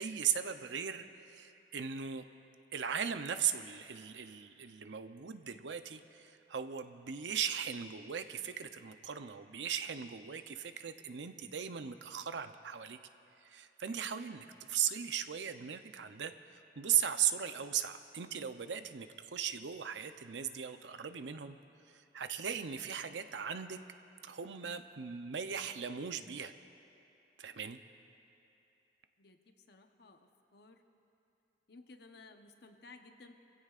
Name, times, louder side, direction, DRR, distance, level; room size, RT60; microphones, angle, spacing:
voice 1, 0.0-2.2 2.7-13.0 13.4-21.6 21.9-23.8 24.2-26.5 27.4-27.8, right 8 dB, 85° right, 9 dB, 0.6 m, -38 dB
voice 2, 29.2-30.8 31.7-33.3, left 3 dB, 65° left, 5 dB, 0.9 m, -57 dB
25.5 x 16.0 x 2.5 m, 2.8 s
head